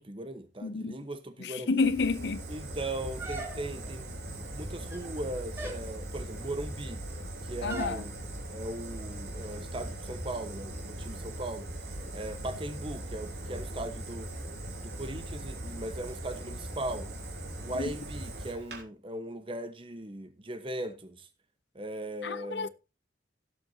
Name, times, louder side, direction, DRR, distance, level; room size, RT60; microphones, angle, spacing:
voice 1, 0.0-1.8 2.5-7.0 7.4-8.2 8.5-11.7 12.1-14.3 14.8-17.1 17.6-21.3 21.7-22.7, right 1 dB, 30° right, 1.1 m, -38 dB
voice 2, 0.6-1.0 1.4-2.4 7.6-8.0 17.8-17.9 22.2-22.7, left 4 dB, 70° left, 0.7 m, -30 dB
Fire, 1.8-18.8, right 1 dB, 65° right, 3.4 m, -40 dB
sound 1, 3.2-3.9 4.8-5.2 5.6-5.9 7.7-8.0, right 2 dB, 15° right, 3.0 m, -39 dB
17.0 x 7.9 x 2.7 m
head